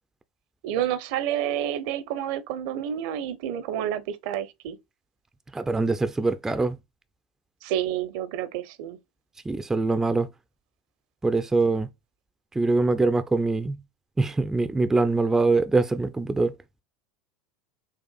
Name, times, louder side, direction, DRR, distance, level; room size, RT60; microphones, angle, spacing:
voice 1, 0.6-4.8 7.6-9.0, right 10 dB, 55° right, 0.6 m, -29 dB
voice 2, 5.5-6.8 9.5-10.3 11.2-11.9 12.5-13.8 14.2-16.5, right 3 dB, 10° right, 0.4 m, -23 dB
6.4 x 2.4 x 2.3 m
figure-of-eight pair, 75°, 4 cm